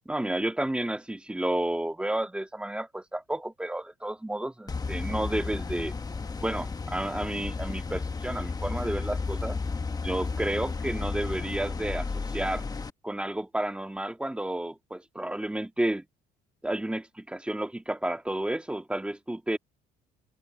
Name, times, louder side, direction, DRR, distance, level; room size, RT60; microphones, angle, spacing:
voice 1, 0.1-5.9 6.4-9.6 10.0-12.6 13.0-16.0 16.6-19.6, right 1 dB, 5° right, 2.5 m, -31 dB
sound 1, 4.7-12.9, left 4 dB, 20° left, 1.3 m, -33 dB
open air
cardioid pair, 110°, 17 cm